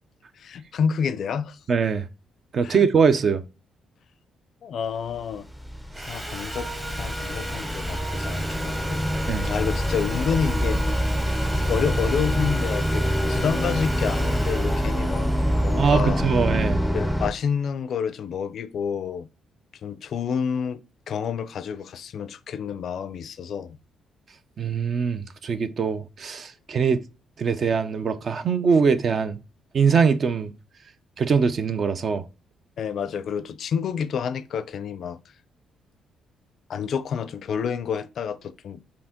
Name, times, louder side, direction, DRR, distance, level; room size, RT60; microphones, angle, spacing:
voice 1, 0.4-1.6 2.6-2.9 4.6-5.5 6.0-6.7 7.0-9.0 9.4-10.8 11.6-15.3 15.6-16.3 16.9-19.3 19.8-20.8 21.1-23.8 32.8-35.2 36.7-38.8, left 7 dB, 60° left, 0.4 m, -29 dB
voice 2, 1.7-2.0 2.5-3.4 6.0-6.1 9.3-9.5 15.8-16.8 24.6-27.0 27.4-29.4 29.7-30.5 31.2-32.2, right 6 dB, 50° right, 0.5 m, -22 dB
sound 1, 5.2-17.3, equal, ahead, 0.5 m, -25 dB
Sawing, 5.9-17.0, equal, 15° right, 1.0 m, -36 dB
4.9 x 2.8 x 3.6 m
cardioid pair, 90°, 0 cm